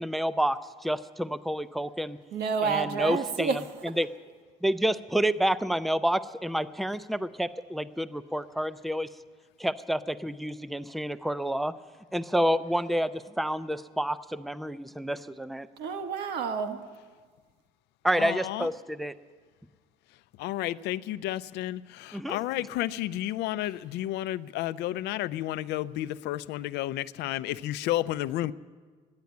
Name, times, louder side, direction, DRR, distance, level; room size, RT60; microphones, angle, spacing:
voice 1, 0.0-2.2 2.6-3.6 4.0-4.1 4.6-9.1 9.6-11.7 12.1-15.7 18.0-19.1 22.1-22.4, equal, ahead, 14 dB, 0.4 m, -29 dB
voice 2, 2.3-3.7 15.8-16.8, right 5 dB, 75° right, 6 dB, 1.4 m, -29 dB
voice 3, 18.2-18.7 20.4-28.5, left 14 dB, 85° left, 15 dB, 0.5 m, -31 dB
12.5 x 10.5 x 9.5 m, 1.5 s
cardioid pair, 110°, 17 cm